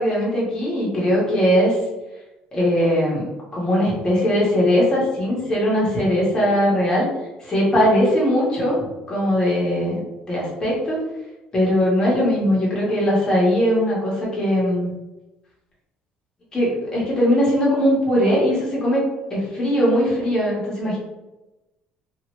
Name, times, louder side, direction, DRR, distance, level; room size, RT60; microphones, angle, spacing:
voice 1, 0.0-1.8 2.5-7.1 7.4-10.0 10.3-11.0 11.5-14.9 16.5-21.0, equal, 25° left, -6 dB, 1.3 m, -20 dB
2.8 x 2.8 x 3.0 m, 1.0 s
cardioid pair, 140°, 3 cm